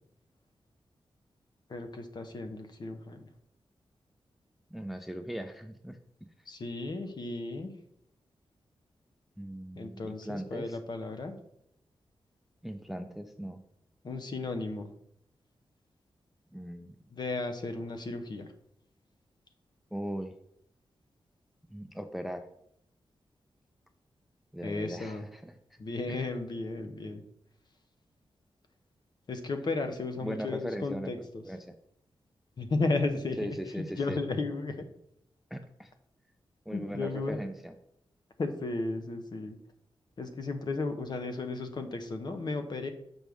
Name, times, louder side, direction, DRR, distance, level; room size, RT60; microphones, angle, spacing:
voice 1, 1.7-3.2 6.5-7.7 9.7-11.3 14.0-14.9 17.1-18.5 24.6-25.2 25.8-27.2 29.3-31.4 32.6-34.8 36.7-37.4 38.4-39.6 40.2-42.9, left 3 dB, 45° left, 7 dB, 0.7 m, -34 dB
voice 2, 4.7-6.0 9.4-10.8 12.6-13.6 16.5-17.0 19.9-20.3 21.7-22.5 24.5-25.5 26.1-26.3 30.2-31.7 33.4-34.2 35.5-35.9 36.7-37.8, equal, ahead, 8 dB, 0.4 m, -39 dB
6.1 x 5.2 x 3.5 m, 0.74 s
wide cardioid pair, 145°, 10 cm